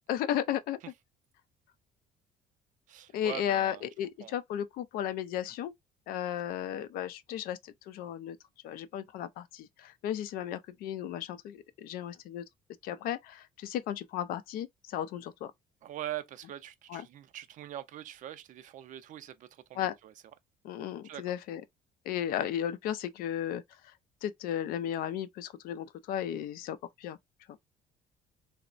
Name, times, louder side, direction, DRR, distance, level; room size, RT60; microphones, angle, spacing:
voice 1, 0.1-0.8 3.1-5.7 6.1-8.4 8.6-12.4 12.8-15.5 16.9-17.1 19.7-20.0 20.6-21.6 22.1-23.6 24.2-27.2 27.5-27.6, left 10 dB, 75° left, 0.4 m, -34 dB
voice 2, 2.9-3.8 4.2-4.3 15.8-20.1 21.0-21.3, right 12 dB, 60° right, 0.4 m, -42 dB
3.1 x 2.0 x 2.4 m
cardioid pair, 110°, 15 cm